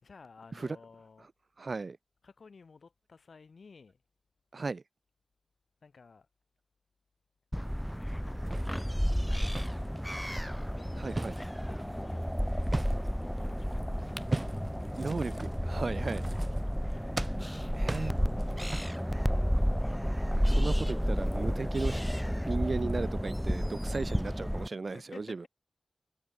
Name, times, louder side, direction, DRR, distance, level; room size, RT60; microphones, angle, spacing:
voice 1, 0.0-1.3 2.2-4.0 5.8-6.3 8.2-10.3 10.7-13.8 16.3-16.5 17.2-18.1 24.9-25.5, left 4 dB, 70° left, 3.9 m, -55 dB
voice 2, 1.6-2.0 4.5-4.8 11.0-11.4 15.0-16.3 16.9-17.0 17.7-18.1 20.5-22.0 22.5-25.4, right 3 dB, 50° right, 0.7 m, -35 dB
sound 1, 7.5-24.7, equal, ahead, 0.7 m, -31 dB
sound 2, 8.1-10.1 10.6-13.3 14.1-16.9 17.2-19.1, right 2 dB, 30° right, 2.4 m, -39 dB
wide cardioid pair, 95°, 0 cm